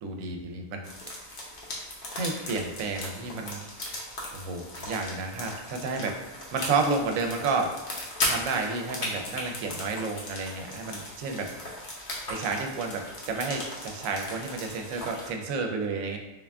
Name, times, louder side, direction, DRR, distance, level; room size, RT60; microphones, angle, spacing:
voice 1, 0.0-0.9 2.1-3.6 4.3-6.1 6.5-7.7 8.3-11.5 12.3-16.2, right 4 dB, 80° right, 3 dB, 0.9 m, -31 dB
sound 1, 0.8-15.3, left 1 dB, 50° left, 0.8 m, -37 dB
3.5 x 2.3 x 3.3 m, 1.0 s
omnidirectional pair, 1.4 m